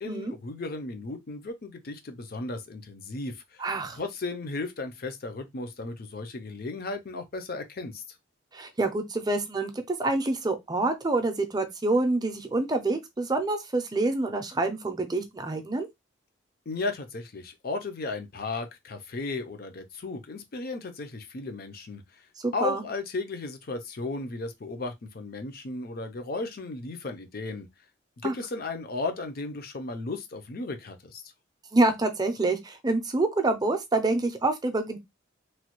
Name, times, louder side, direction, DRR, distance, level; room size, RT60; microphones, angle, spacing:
voice 1, 0.0-3.6 4.0-8.0 16.7-22.0 22.5-27.7 28.2-31.2, left 3 dB, 50° left, 0.5 m, -35 dB
voice 2, 3.6-4.0 8.5-15.9 22.4-22.8 28.2-28.3 31.7-35.0, right 2 dB, 20° right, 0.5 m, -27 dB
3.0 x 2.2 x 2.9 m
head